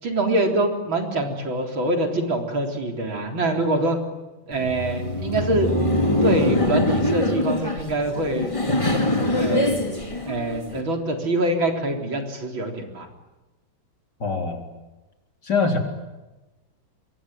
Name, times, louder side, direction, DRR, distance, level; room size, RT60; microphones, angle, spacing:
voice 1, 0.0-4.0 4.5-5.7 6.2-8.6 9.3-9.7 10.3-13.1, right 2 dB, 80° right, 3 dB, 4.7 m, -24 dB
Laughter, 4.5-10.8, left 1 dB, 15° left, 3.1 m, -23 dB
voice 2, 14.2-14.6 15.4-15.8, left 4 dB, 55° left, 3 dB, 4.5 m, -23 dB
26.5 x 23.0 x 9.4 m, 1.1 s
omnidirectional pair, 2.1 m